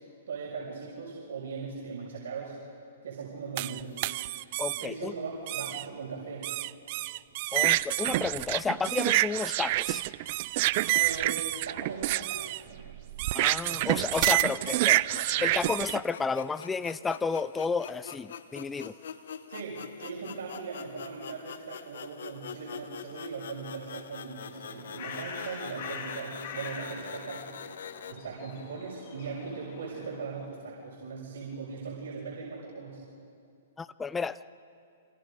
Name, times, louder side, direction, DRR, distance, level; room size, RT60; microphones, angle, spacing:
voice 1, 0.3-2.5 3.0-4.0 4.8-6.5 10.9-12.4 12.7-12.8 13.6-13.8 14.3-14.4 19.5-27.5 28.1-33.0, right 5 dB, 70° right, -5 dB, 6.7 m, -39 dB
sound 1, 3.6-4.9 5.5-5.8 6.4-16.0, right 18 dB, 40° right, 0.5 m, -28 dB
voice 2, 4.6-5.2 7.5-10.0 13.3-18.9 33.8-34.4, left 5 dB, 10° left, 16 dB, 0.5 m, -32 dB
sound 2, 13.8-28.1, left 7 dB, 70° left, 1.2 m, -44 dB
Bird, 24.5-30.5, left 5 dB, 50° left, 4.0 m, -44 dB
28.0 x 27.0 x 5.3 m, 2.5 s
hypercardioid pair, 150°, 0 cm